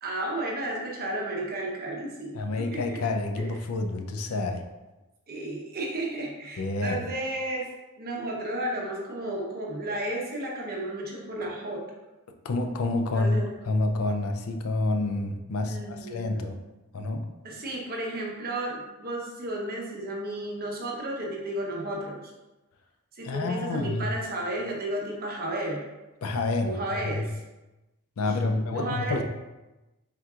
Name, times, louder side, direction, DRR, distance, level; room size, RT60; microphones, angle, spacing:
voice 1, 0.0-3.0 3.4-3.5 5.3-7.7 8.0-11.8 13.1-13.5 15.6-16.6 17.4-22.3 23.2-25.9 26.6-27.3 28.2-29.2, right 1 dB, 45° right, -2 dB, 0.9 m, -33 dB
voice 2, 2.3-4.6 6.6-7.0 12.4-16.5 16.9-17.2 23.2-24.1 26.2-26.8 27.1-27.2 28.2-29.2, left 2 dB, 70° left, 5 dB, 0.4 m, -28 dB
4.4 x 3.7 x 2.4 m, 1.1 s
head